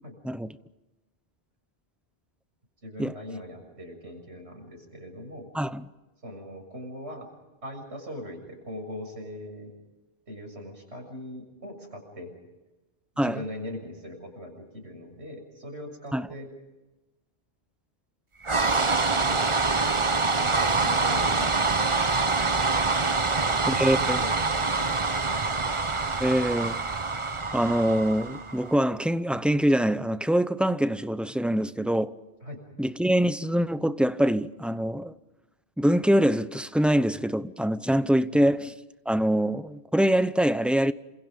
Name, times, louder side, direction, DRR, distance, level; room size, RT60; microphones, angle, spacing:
voice 1, 2.8-5.5 6.2-7.3 7.6-9.7 10.3-12.3 13.2-16.5 18.5-21.7 23.1-25.5 32.4-32.6 38.3-38.5, equal, 90° right, 7.2 m, -41 dB
sound 1, 18.4-28.7, right 3 dB, 30° right, 1.0 m, -25 dB
voice 2, 23.7-24.2 26.2-26.8 27.5-32.1 32.8-35.1 35.8-38.7 39.1-40.9, equal, ahead, 0.7 m, -24 dB
28.5 x 27.5 x 5.3 m
omnidirectional pair, 1.1 m